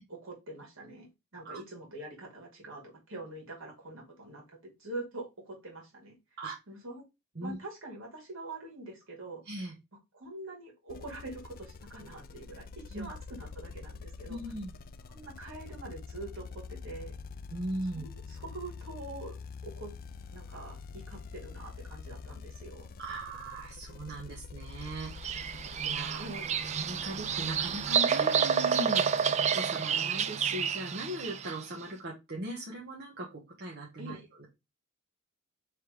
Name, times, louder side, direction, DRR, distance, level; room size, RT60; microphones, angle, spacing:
voice 1, 0.0-6.1 6.7-7.0 7.4-9.4 10.1-14.4 15.1-17.2 17.9-19.3 19.6-19.9 20.3-22.9 26.2-26.6 34.0-34.2, right 2 dB, 65° right, -1 dB, 2.2 m, -44 dB
sound 1, 10.9-27.9, left 4 dB, 45° left, 0.3 m, -46 dB
voice 2, 14.3-14.7 17.5-18.1 23.0-25.5 25.8-26.3 26.7-34.5, right 1 dB, 50° right, -3 dB, 1.1 m, -39 dB
Bird vocalization bird call bird song, 25.0-31.6, right 7 dB, 30° right, 0.3 m, -29 dB
3.4 x 3.4 x 4.5 m, 0.23 s
head